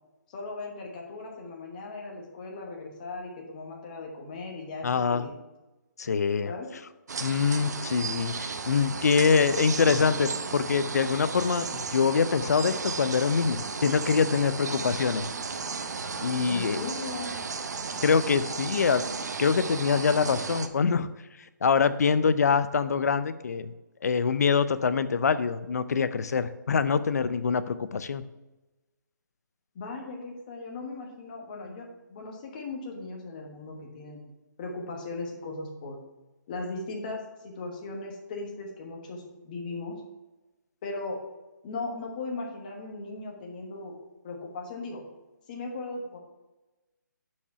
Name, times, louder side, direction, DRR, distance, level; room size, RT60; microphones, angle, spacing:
voice 1, 0.3-5.3 6.4-6.7 16.5-17.3 29.7-34.2 34.6-36.0 36.5-40.0 40.8-41.2 41.6-44.0 44.2-45.0 45.5-46.2, left 3 dB, 25° left, 0 dB, 1.2 m, -38 dB
voice 2, 4.8-5.3 6.0-6.5 7.2-15.3 16.2-16.9 18.0-19.0 19.4-21.1 21.6-23.7 24.0-28.2, left 5 dB, 55° left, 13 dB, 0.5 m, -24 dB
sound 1, 7.1-20.7, right 4 dB, 60° right, 0.7 m, -34 dB
7.1 x 4.8 x 5.6 m, 1.1 s
hypercardioid pair, 170°, 10 cm